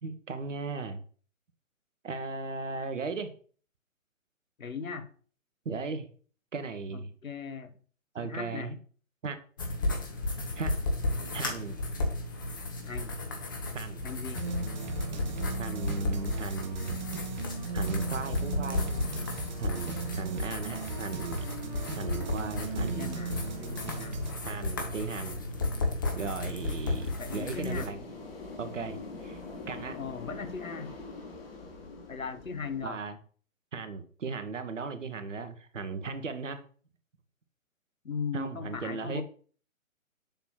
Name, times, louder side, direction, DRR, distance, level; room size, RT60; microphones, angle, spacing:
voice 1, 0.0-1.0 2.0-3.3 5.6-6.1 6.5-7.1 8.1-8.8 9.2-9.4 10.6-10.8 11.3-11.8 13.7-14.0 15.6-16.9 17.7-19.1 19.6-21.5 21.9-23.1 24.4-25.4 26.1-28.1 28.6-29.4 29.7-30.0 32.8-33.2 33.7-36.6 38.3-39.2, right 4 dB, 65° right, 9 dB, 1.1 m, -36 dB
voice 2, 4.6-5.1 6.9-7.7 8.2-8.7 12.9-13.2 14.0-14.4 23.0-24.1 27.2-27.9 29.9-31.0 32.1-33.0 38.0-39.2, left 5 dB, 75° left, 11 dB, 1.0 m, -38 dB
sound 1, 9.6-27.9, left 2 dB, 15° left, 0.5 m, -34 dB
sound 2, 14.3-24.3, right 5 dB, 35° right, 0.8 m, -38 dB
sound 3, 19.0-32.8, left 3 dB, 45° left, 1.5 m, -47 dB
7.0 x 3.0 x 5.6 m, 0.43 s
figure-of-eight pair, 135°, 41 cm